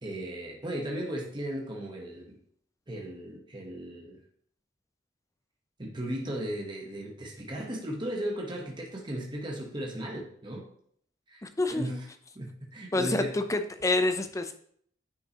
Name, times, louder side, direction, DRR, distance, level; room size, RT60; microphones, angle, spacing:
voice 1, 0.0-2.4 2.9-4.2 5.8-10.6 11.3-11.4 11.7-12.1 12.3-13.4, right 1 dB, 25° right, -1 dB, 1.1 m, -36 dB
voice 2, 11.4-12.0 12.9-14.5, left 2 dB, 15° left, 8 dB, 0.5 m, -28 dB
9.7 x 5.4 x 2.9 m, 0.63 s
head